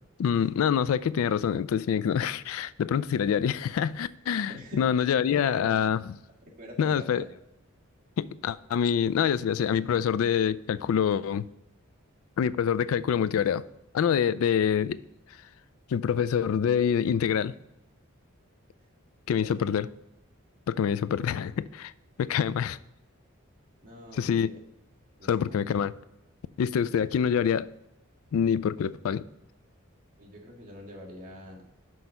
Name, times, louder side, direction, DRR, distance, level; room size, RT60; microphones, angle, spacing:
voice 1, 0.2-6.0 6.8-7.2 8.2-11.5 12.4-13.6 13.9-15.0 15.9-17.5 19.3-19.9 20.7-21.9 22.2-22.8 24.2-24.5 25.3-25.9 26.6-27.7 28.3-29.2, left 8 dB, 75° left, 0.3 m, -26 dB
voice 2, 4.5-5.9 6.6-7.3 19.4-19.7 23.8-24.6 25.2-25.7 30.2-31.6, equal, 40° right, 1.7 m, -44 dB
6.1 x 4.8 x 5.4 m
head